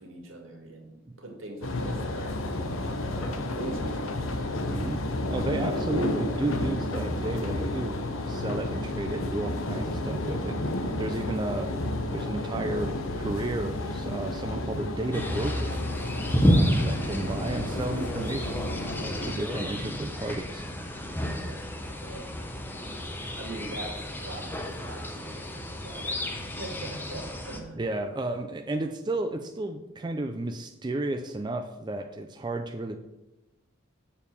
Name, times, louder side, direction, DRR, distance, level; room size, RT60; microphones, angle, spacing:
voice 1, 0.0-4.9 5.6-5.8 6.6-6.8 21.4-21.6 22.0-22.3 23.4-27.8, right 2 dB, 75° right, 2 dB, 2.1 m, -43 dB
sound 1, 1.6-19.4, left 1 dB, 85° left, 0.9 m, -31 dB
voice 2, 4.7-5.0 5.3-11.8 12.1-15.8 16.4-20.6 27.8-33.0, right 2 dB, 20° right, 6 dB, 0.4 m, -33 dB
sound 2, 15.1-27.6, equal, 10° left, 0.7 m, -31 dB
7.2 x 4.5 x 6.9 m, 0.95 s
head